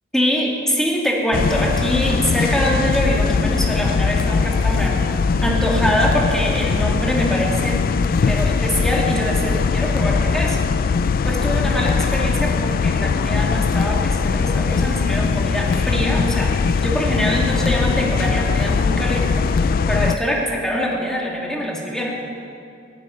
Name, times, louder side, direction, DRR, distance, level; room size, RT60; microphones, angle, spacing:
voice 1, 0.1-5.0 5.4-7.8 8.3-10.6 11.2-22.2, equal, 5° left, -3 dB, 2.2 m, -23 dB
sound 1, 1.3-20.2, left 5 dB, 50° left, 0.3 m, -20 dB
16.0 x 7.4 x 9.6 m, 2.5 s
head